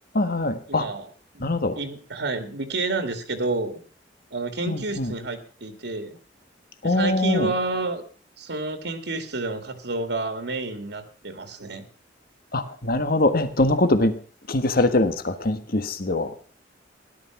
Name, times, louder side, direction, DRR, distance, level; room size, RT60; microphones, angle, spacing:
voice 1, 0.1-0.9 1.4-1.8 4.7-5.1 6.8-7.5 12.5-14.2 14.5-16.3, left 2 dB, 55° left, 9 dB, 1.5 m, -23 dB
voice 2, 0.7-1.1 1.3-1.4 1.8-3.8 4.3-6.2 6.8-8.0 8.4-11.9, right 3 dB, 70° right, 7 dB, 2.0 m, -29 dB
17.0 x 11.5 x 5.9 m, 0.43 s
head